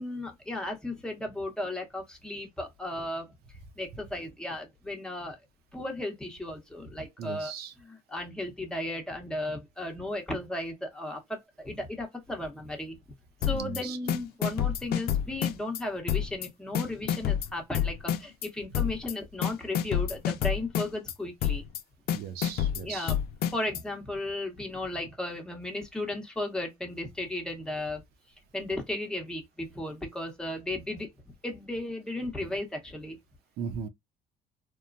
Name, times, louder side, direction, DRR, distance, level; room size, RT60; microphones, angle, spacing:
voice 1, 0.0-3.3 3.8-5.4 5.7-7.5 7.8-13.0 13.4-21.7 22.7-23.1 23.5-28.0 28.5-31.1 31.4-33.2, left 1 dB, 5° left, 1.0 m, -35 dB
voice 2, 7.2-7.7 13.5-14.0 22.1-23.1 33.6-33.9, right 7 dB, 70° right, 0.6 m, -37 dB
sound 1, 13.4-13.8 14.1-15.8 16.1-16.5 16.7-18.5 18.7-19.1 19.4-21.1 21.4-21.8 22.1-23.8, left 10 dB, 70° left, 0.5 m, -28 dB
3.0 x 2.1 x 2.5 m
cardioid pair, 110°, 17 cm